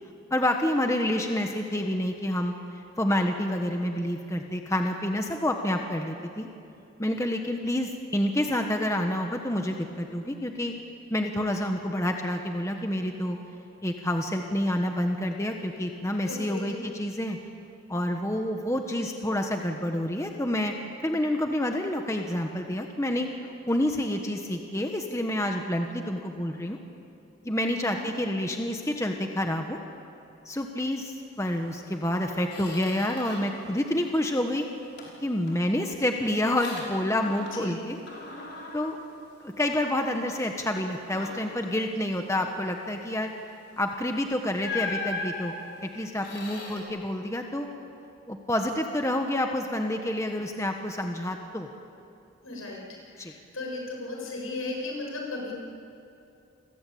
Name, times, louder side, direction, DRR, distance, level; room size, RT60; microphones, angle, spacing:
voice 1, 0.3-2.5 3.0-6.5 7.0-10.7 11.1-13.4 13.8-17.4 17.9-20.7 21.0-23.3 23.7-26.8 27.4-29.8 30.4-34.7 35.2-38.0 38.7-39.0 39.4-43.3 43.8-45.5 45.8-47.7 48.3-51.7 53.2-53.3, left 1 dB, 15° left, 3 dB, 1.3 m, -28 dB
voice 2, 16.3-16.8 27.6-28.0 37.6-37.7 52.4-52.8 53.1-55.5, left 2 dB, 80° left, -1 dB, 7.2 m, -36 dB
Squeak, 31.7-31.8 32.2-33.6 34.0-34.5 35.0-37.8 38.1-39.9 40.3-40.5 41.0-41.6 43.7-43.9 44.6-46.8, left 3 dB, 50° left, 5.4 m, -39 dB
29.0 x 22.5 x 8.7 m, 2.7 s
head